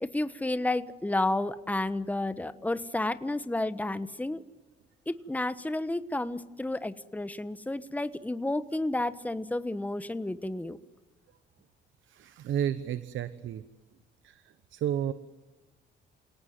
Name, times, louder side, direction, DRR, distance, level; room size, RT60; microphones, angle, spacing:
voice 1, 0.0-4.4 5.1-10.8, left 2 dB, 10° left, 13 dB, 1.2 m, -31 dB
voice 2, 12.1-13.6 14.2-15.1, right 10 dB, 75° right, 13 dB, 1.1 m, -32 dB
28.5 x 18.5 x 9.5 m, 1.2 s
cardioid pair, 90°, 20 cm